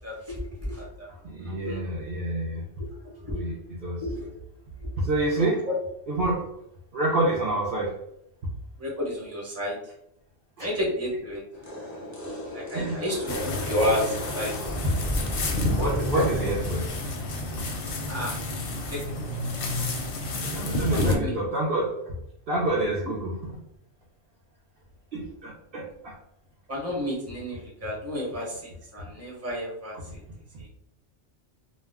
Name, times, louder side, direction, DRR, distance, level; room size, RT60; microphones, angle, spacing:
voice 1, 0.0-1.1 1.5-1.8 2.8-2.9 3.2-3.5 4.0-4.3 5.3-5.7 6.1-6.2 8.8-9.8 10.6-11.4 12.5-14.6 15.1-15.2 16.4-16.5 18.1-18.4 18.9-19.0 20.9-21.4 23.0-23.1 26.7-30.2 30.6-30.7, left 1 dB, 15° right, -4 dB, 0.9 m, -31 dB
voice 2, 1.2-2.6 3.3-3.6 3.8-4.0 5.0-5.6 6.1-6.4 6.9-8.0 10.6-10.7 12.7-13.0 13.3-13.4 15.6-16.9 17.4-17.5 20.4-22.1 22.5-23.6 25.1-26.2 30.1-30.2 30.5-30.6, right 2 dB, 55° right, -5 dB, 0.7 m, -28 dB
sound 1, 11.5-18.9 19.3-20.7, equal, 20° left, 0.6 m, -35 dB
sound 2, 13.3-21.2, left 2 dB, 60° left, 0.6 m, -30 dB
2.2 x 2.2 x 3.4 m, 0.76 s
omnidirectional pair, 1.2 m